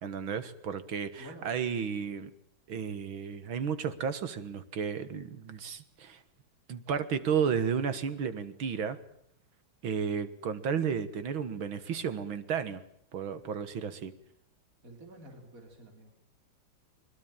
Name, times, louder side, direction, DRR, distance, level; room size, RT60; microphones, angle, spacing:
voice 1, 0.0-2.3 2.7-6.2 6.7-9.0 9.8-12.8 13.1-14.1, right 7 dB, 85° right, 12 dB, 2.4 m, -33 dB
voice 2, 1.2-1.5 14.8-16.2, right 1 dB, 40° right, 4 dB, 4.3 m, -49 dB
22.5 x 22.0 x 9.1 m, 0.73 s
omnidirectional pair, 2.2 m